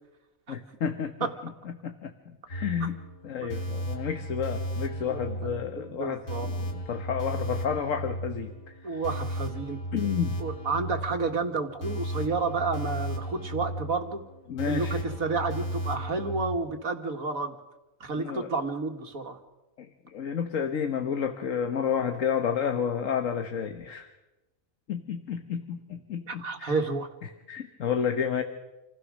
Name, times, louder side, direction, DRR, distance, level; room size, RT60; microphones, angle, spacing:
voice 1, 0.5-1.1 1.4-1.5 1.8-2.9 3.2-9.0 9.9-10.4 14.5-15.0 18.2-18.5 19.8-24.1 24.9-26.7 27.5-28.4, left 7 dB, 70° left, 6 dB, 1.5 m, -31 dB
sound 1, 2.5-16.6, right 1 dB, 85° left, 2.7 m, -35 dB
voice 2, 5.8-6.5 8.8-9.8 10.4-14.2 14.7-17.6 18.0-19.4 26.3-27.1, right 4 dB, 90° right, 5 dB, 2.2 m, -30 dB
28.0 x 16.5 x 6.3 m, 1.0 s
omnidirectional pair, 1.4 m